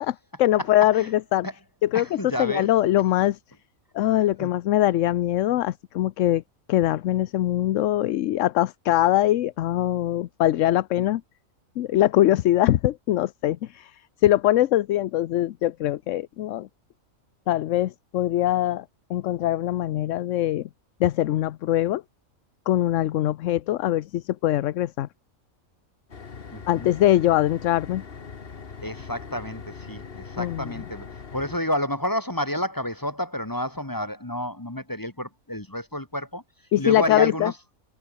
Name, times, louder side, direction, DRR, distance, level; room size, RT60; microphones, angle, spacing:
voice 1, 0.0-1.5 1.8-3.4 3.9-6.4 6.7-11.2 11.8-14.0 14.2-16.7 17.5-18.8 19.1-20.7 21.0-22.0 22.7-25.1 26.7-28.0 30.4-30.7 36.7-37.5, left 13 dB, 70° left, 0.9 m, -22 dB
voice 2, 1.9-2.7 4.4-4.5 11.0-11.1 26.5-26.9 28.8-36.4 36.8-37.5, left 1 dB, 15° left, 1.8 m, -30 dB
sound 1, 26.1-31.6, left 5 dB, 45° left, 1.6 m, -41 dB
omnidirectional pair, 1.4 m